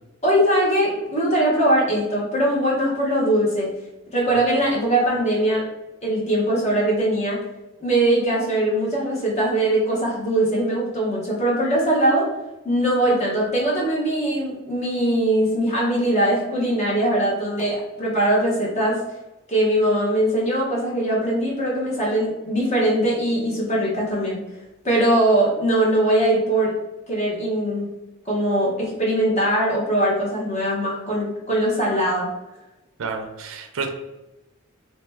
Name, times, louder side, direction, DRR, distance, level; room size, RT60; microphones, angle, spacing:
voice 1, 0.2-3.7 4.1-5.6 6.0-7.4 7.8-12.3 12.6-19.0 19.5-24.4 24.8-26.7 27.1-27.9 28.2-32.3, right 1 dB, 35° left, -4 dB, 1.2 m, -21 dB
voice 2, 33.0-33.9, right 4 dB, 70° right, 5 dB, 0.5 m, -29 dB
3.1 x 3.0 x 3.4 m, 0.99 s
head